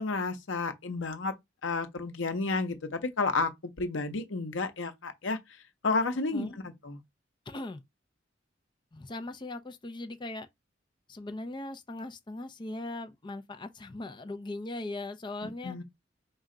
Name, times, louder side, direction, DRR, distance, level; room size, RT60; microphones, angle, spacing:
voice 1, 0.0-1.3 1.6-7.0 15.4-15.8, left 3 dB, 80° left, 0.8 m, -32 dB
voice 2, 7.5-7.8 8.9-10.5 11.1-15.8, left 2 dB, 25° left, 0.5 m, -39 dB
4.2 x 2.3 x 3.7 m
head